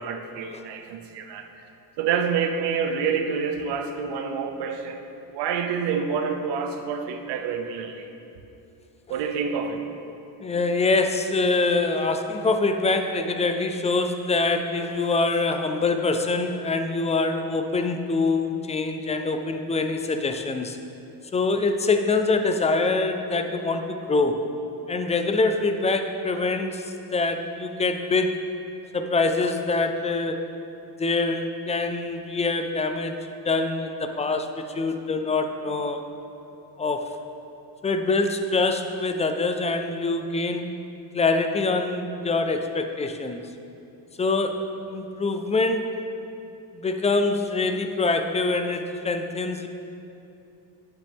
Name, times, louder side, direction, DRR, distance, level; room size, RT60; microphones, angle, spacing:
voice 1, 0.0-1.5 2.0-5.0 5.3-8.1 9.1-9.8, right 6 dB, 85° right, 6 dB, 0.8 m, -27 dB
voice 2, 10.4-20.8 21.3-24.4 24.9-28.4 28.9-30.5 31.0-33.2 33.4-36.1 36.8-37.1 37.8-40.7 41.1-43.4 44.2-46.0 46.7-49.7, left 3 dB, 20° left, 7 dB, 0.3 m, -25 dB
9.0 x 8.3 x 3.5 m, 2.7 s
cardioid pair, 140°, 40 cm